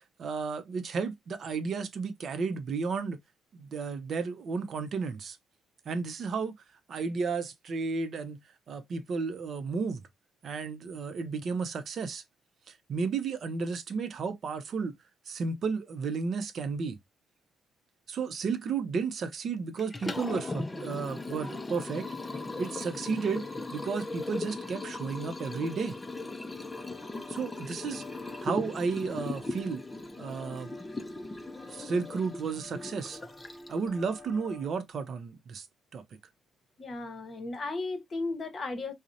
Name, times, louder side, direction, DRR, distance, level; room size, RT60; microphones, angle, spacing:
voice 1, 0.2-3.2 3.5-5.4 5.9-6.5 6.9-8.4 8.7-10.0 10.4-12.2 12.7-14.9 15.3-17.0 18.1-22.1 22.6-23.5 23.7-26.0 27.3-28.0 28.4-29.8 30.2-30.7 31.7-33.2 33.7-35.7 35.9-36.0, right 5 dB, 60° right, 0.4 m, -33 dB
Liquid, 19.8-33.9, left 2 dB, 20° left, 0.4 m, -38 dB
sound 1, 26.5-34.7, left 1 dB, ahead, 0.9 m, -49 dB
voice 2, 36.8-38.9, left 3 dB, 40° left, 0.8 m, -35 dB
2.7 x 2.0 x 2.5 m
cardioid pair, 90°, 0 cm